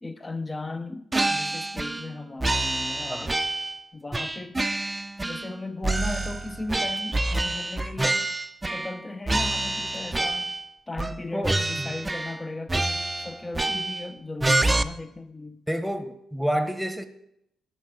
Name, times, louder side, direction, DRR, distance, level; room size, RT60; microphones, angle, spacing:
voice 1, 0.0-3.4 3.9-4.6 5.2-8.4 8.7-10.6 10.9-15.6, left 2 dB, 25° left, 0.8 m, -37 dB
sound 1, 1.1-2.1 2.4-3.8 4.1-5.6 5.8-9.0 9.3-10.6 11.0-11.2 11.4-12.4 12.7-14.1 14.4-14.8, right 2 dB, 20° right, 0.6 m, -27 dB
voice 2, 11.3-11.9 15.7-17.1, equal, ahead, 1.2 m, -29 dB
16.5 x 6.6 x 3.9 m
supercardioid pair, 60°, 0 cm